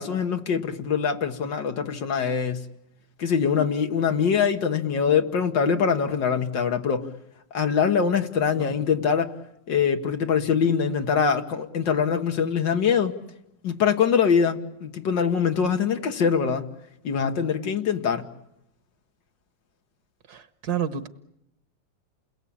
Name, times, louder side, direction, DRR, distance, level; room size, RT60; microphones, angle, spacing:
voice 1, 0.0-2.6 3.2-7.1 7.5-9.3 9.7-13.2 13.6-16.6 17.0-18.3, left 6 dB, 85° left, 2.2 m, -23 dB
voice 2, 20.3-21.1, right 8 dB, 65° right, 1.7 m, -30 dB
29.0 x 21.5 x 8.7 m
omnidirectional pair, 1.9 m